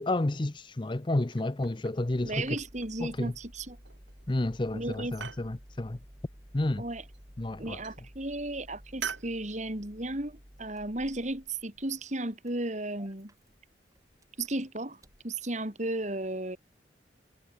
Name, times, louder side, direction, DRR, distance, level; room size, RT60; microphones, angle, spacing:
voice 1, 0.0-2.6 3.0-3.3 4.3-6.0 6.5-6.8 7.4-7.8, left 2 dB, 25° left, 0.6 m, -30 dB
sound 1, 1.3-2.1 2.4-3.0 3.8-4.3 4.6-5.5 6.9-7.4 7.8-8.1 9.0-9.3, right 7 dB, 80° right, 2.0 m, -42 dB
Engine starting, 2.0-15.3, equal, 20° right, 4.5 m, -54 dB
voice 2, 2.2-3.8 4.7-5.1 6.8-7.0 7.6-13.3 14.4-16.6, right 2 dB, 40° right, 2.9 m, -34 dB
head